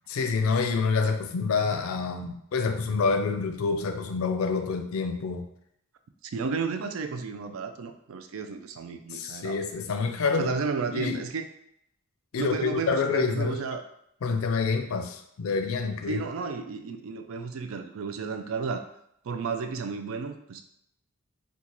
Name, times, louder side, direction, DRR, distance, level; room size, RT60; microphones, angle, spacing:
voice 1, 0.1-5.5 9.1-10.5 10.9-11.2 12.3-13.6 14.2-16.2, left 4 dB, 85° left, 6 dB, 0.4 m, -27 dB
voice 2, 6.3-9.6 10.4-11.5 12.4-13.9 16.1-18.9 19.2-20.6, right 4 dB, 75° right, 7 dB, 0.4 m, -32 dB
3.8 x 2.3 x 2.9 m, 0.74 s
head